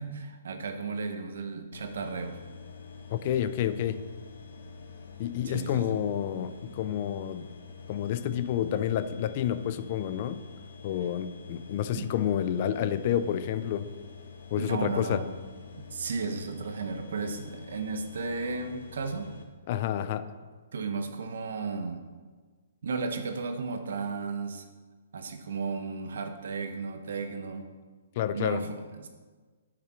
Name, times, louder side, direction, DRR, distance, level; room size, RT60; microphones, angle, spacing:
voice 1, 0.0-2.4 5.4-6.0 11.9-12.1 14.6-15.3 15.7-19.3 20.7-22.0 22.8-24.6 25.1-27.6 28.3-29.1, right 4 dB, 70° right, 6 dB, 1.2 m, -34 dB
sound 1, 1.7-19.4, left 5 dB, 90° left, 1.5 m, -47 dB
voice 2, 3.1-4.0 5.2-7.5 7.9-10.4 10.8-13.9 14.5-15.2 19.7-20.3 28.2-28.7, left 10 dB, 35° left, 13 dB, 0.4 m, -29 dB
10.0 x 6.6 x 4.5 m, 1.4 s
hypercardioid pair, 165°, 0 cm